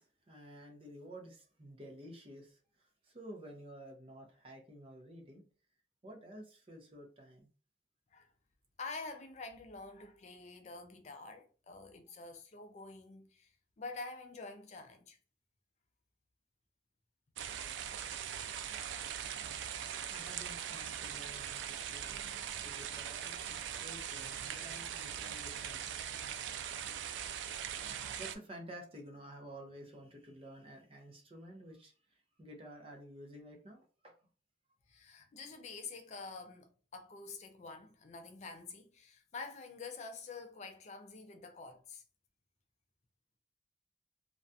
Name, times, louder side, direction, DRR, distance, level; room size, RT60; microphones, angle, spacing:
voice 1, 0.0-5.4 6.0-7.5 19.4-22.3 22.6-26.1 27.7-27.8 28.2-34.1, equal, 30° right, 0.6 m, -52 dB
voice 2, 8.8-13.5 13.8-15.2 34.9-42.0, left 4 dB, 40° left, 0.4 m, -47 dB
sound 1, 17.4-28.4, right 9 dB, 85° right, 0.3 m, -41 dB
2.4 x 2.1 x 2.6 m
head